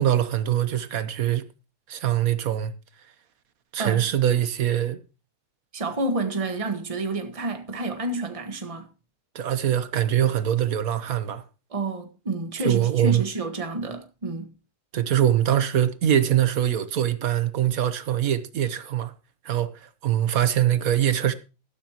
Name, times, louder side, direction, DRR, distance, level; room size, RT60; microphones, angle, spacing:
voice 1, 0.0-1.4 1.9-2.7 3.7-5.0 9.3-11.4 12.6-13.2 14.9-19.1 19.4-21.3, right 11 dB, 60° right, 1.3 m, -23 dB
voice 2, 5.7-8.9 11.7-14.5, right 2 dB, 20° right, 1.4 m, -29 dB
13.0 x 12.0 x 2.9 m
omnidirectional pair, 1.8 m